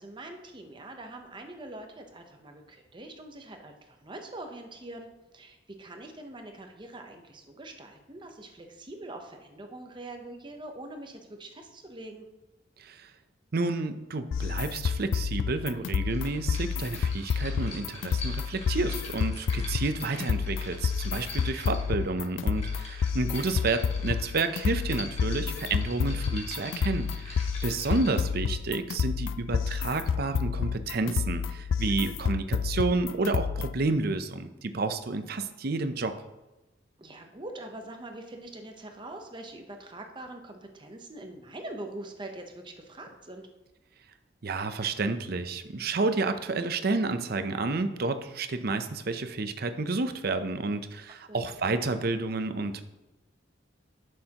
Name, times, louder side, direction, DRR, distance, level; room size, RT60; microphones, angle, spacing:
voice 1, 0.0-12.3 37.0-43.5 51.1-51.5, right 1 dB, 25° right, 4 dB, 0.8 m, -43 dB
voice 2, 13.5-36.2 44.4-52.8, right 3 dB, 55° right, 9 dB, 0.6 m, -30 dB
sound 1, 14.3-33.9, left 6 dB, 85° left, 0.4 m, -30 dB
sound 2, 16.1-28.3, left 2 dB, 35° left, 1.7 m, -45 dB
11.5 x 6.5 x 2.9 m, 1.0 s
head